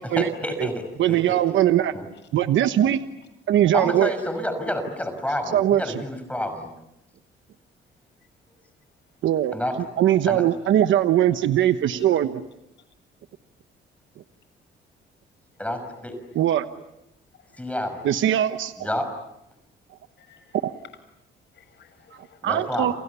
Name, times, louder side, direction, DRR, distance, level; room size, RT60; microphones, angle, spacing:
voice 1, 0.0-1.4 1.9-2.0 3.7-6.7 9.5-9.8 10.3-10.4 15.6-16.2 17.6-18.0 18.8-19.1 22.4-22.9, left 1 dB, 5° left, 7 dB, 5.7 m, -29 dB
voice 2, 1.0-1.9 2.3-3.0 3.5-4.1 5.5-5.9 9.2-12.4 16.3-16.7 18.0-18.7 20.6-20.7 22.4-22.9, right 11 dB, 75° right, 9 dB, 1.2 m, -21 dB
voice 3, 11.6-12.1 17.4-17.7 20.2-20.8 21.5-22.4, left 7 dB, 65° left, 9 dB, 7.1 m, -56 dB
29.5 x 28.5 x 7.0 m, 0.88 s
cardioid pair, 90°, 20 cm